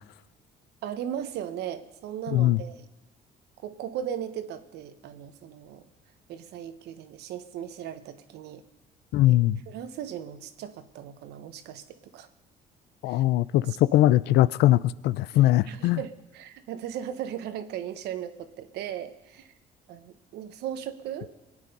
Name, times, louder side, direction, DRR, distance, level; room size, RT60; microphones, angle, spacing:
voice 1, 0.8-2.8 3.6-5.8 6.3-8.6 9.3-9.4 9.7-12.3 13.1-13.2 13.7-14.0 15.3-19.5 19.9-21.3, right 10 dB, 80° right, 1.1 m, -37 dB
voice 2, 9.1-9.6 13.0-16.0, left 14 dB, 80° left, 0.5 m, -21 dB
21.5 x 9.2 x 5.4 m
cardioid pair, 110°, 17 cm